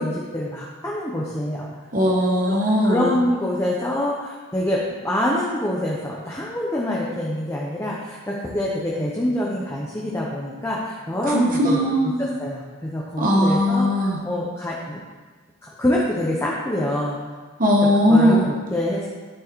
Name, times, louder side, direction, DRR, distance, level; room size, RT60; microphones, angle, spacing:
voice 1, 0.0-1.7 2.3-2.6 2.8-13.9 14.2-15.0 15.6-17.2 18.1-19.1, left 1 dB, 10° left, -4 dB, 0.9 m, -26 dB
voice 2, 1.9-3.1 11.2-12.2 13.2-14.2 17.6-18.5, equal, 40° right, -2 dB, 1.2 m, -19 dB
11.5 x 4.5 x 4.7 m, 1.4 s
head